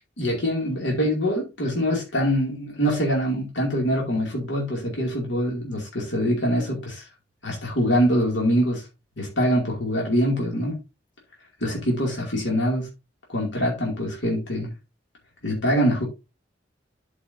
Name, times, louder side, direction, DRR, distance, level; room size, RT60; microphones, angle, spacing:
voice 1, 0.2-7.0 7.4-8.8 9.2-10.8 11.6-12.9 13.3-14.7 15.4-16.0, equal, 90° left, 2.5 m, -24 dB
11.5 x 5.1 x 2.7 m
head